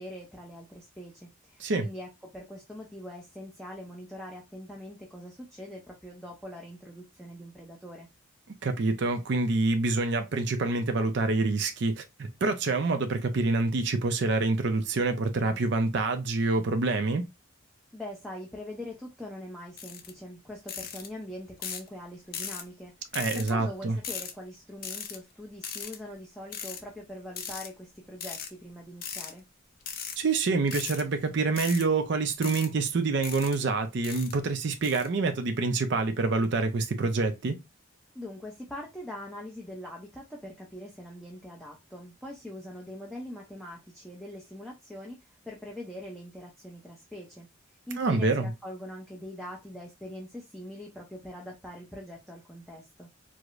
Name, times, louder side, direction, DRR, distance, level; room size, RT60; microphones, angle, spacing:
voice 1, 0.0-8.1 17.9-22.9 23.3-29.4 38.1-47.5 47.9-53.1, left 1 dB, ahead, 0.6 m, -43 dB
voice 2, 8.6-17.3 23.1-24.0 30.2-37.6 48.0-48.5, right 3 dB, 55° right, 0.4 m, -27 dB
sound 1, 19.8-20.1 20.7-21.1 21.6-21.9 22.3-22.6 23.1-23.5 24.0-24.3 24.8-25.2 25.6-26.0 26.5-26.8 27.4-27.7 28.2-28.5 29.0-29.3 29.8-30.2 30.7-31.0 31.6-31.8 32.4-32.7 33.2-33.6 34.0-34.3 34.8-35.1, left 7 dB, 45° left, 0.6 m, -37 dB
4.7 x 2.1 x 2.4 m
head